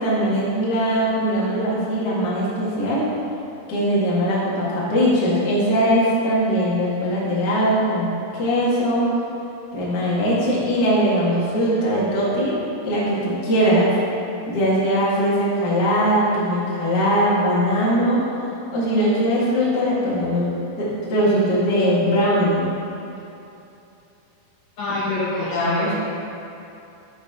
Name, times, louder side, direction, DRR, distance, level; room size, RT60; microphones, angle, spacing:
voice 1, 0.0-3.1 3.7-9.1 9.7-13.9 14.5-18.2 18.7-22.7 25.3-25.9, equal, 45° left, -7 dB, 1.3 m, -20 dB
voice 2, 24.8-25.9, left 2 dB, 70° left, -9 dB, 1.7 m, -26 dB
6.5 x 5.8 x 5.5 m, 2.7 s
omnidirectional pair, 4.7 m